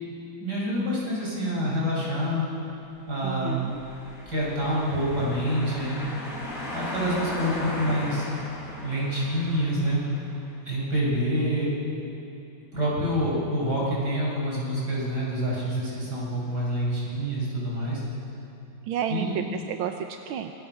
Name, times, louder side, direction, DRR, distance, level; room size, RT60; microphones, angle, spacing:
voice 1, 0.4-2.5 3.1-3.6 4.3-6.0 6.7-8.3 8.8-10.0 10.7-11.7 12.7-18.0 19.1-19.4, equal, 55° right, -5 dB, 7.6 m, -27 dB
voice 2, 3.2-3.8 18.9-20.5, right 9 dB, 90° right, 5 dB, 1.7 m, -31 dB
sound 1, 3.6-10.3, left 1 dB, 40° left, 5.5 m, -37 dB
26.5 x 23.0 x 6.2 m, 3.0 s
omnidirectional pair, 2.2 m